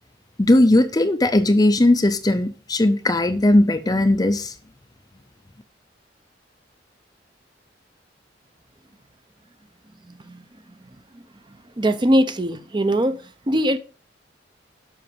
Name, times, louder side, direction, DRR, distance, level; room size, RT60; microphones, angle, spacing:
voice 1, 0.4-4.5, left 1 dB, 20° left, 0.5 m, -18 dB
voice 2, 11.8-13.2 13.5-13.8, equal, 25° right, 0.7 m, -20 dB
7.8 x 5.8 x 5.2 m
head